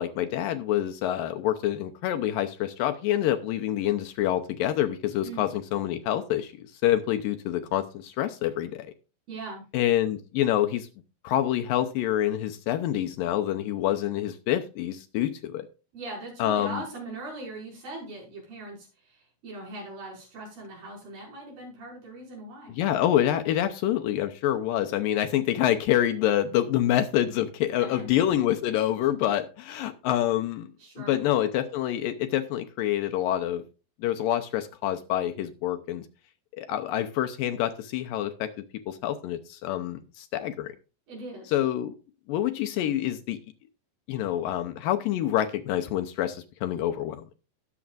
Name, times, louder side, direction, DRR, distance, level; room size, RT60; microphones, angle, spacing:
voice 1, 0.0-8.9 9.7-10.9 11.2-15.7 16.4-16.8 22.7-30.7 31.0-33.6 34.0-36.1 36.6-38.5 38.9-40.7 41.5-41.9 42.3-43.4 44.1-47.2, left 12 dB, 80° left, 7 dB, 2.3 m, -27 dB
voice 2, 9.3-9.6 15.9-22.8 27.8-28.1 30.8-31.2 41.1-41.5, right 2 dB, 90° right, -3 dB, 7.8 m, -40 dB
20.0 x 7.0 x 2.5 m, 0.33 s
omnidirectional pair, 4.3 m